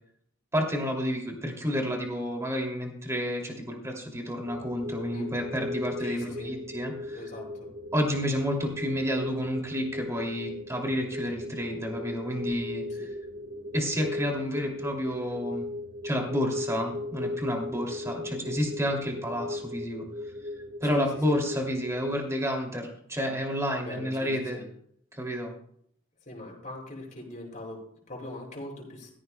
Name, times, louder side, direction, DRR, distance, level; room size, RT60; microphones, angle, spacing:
voice 1, 0.5-7.2 7.9-12.8 13.7-15.7 16.0-20.1 20.8-24.6 25.1-25.5, equal, 15° right, 1 dB, 2.6 m, -30 dB
sound 1, 4.4-22.3, left 2 dB, 65° right, 1.3 m, -37 dB
voice 2, 6.0-6.5 7.1-7.7 12.9-13.0 17.8-18.0 20.8-21.1 23.8-24.6 26.2-29.1, left 1 dB, 35° left, -2 dB, 6.5 m, -41 dB
16.5 x 15.0 x 2.2 m, 0.65 s
head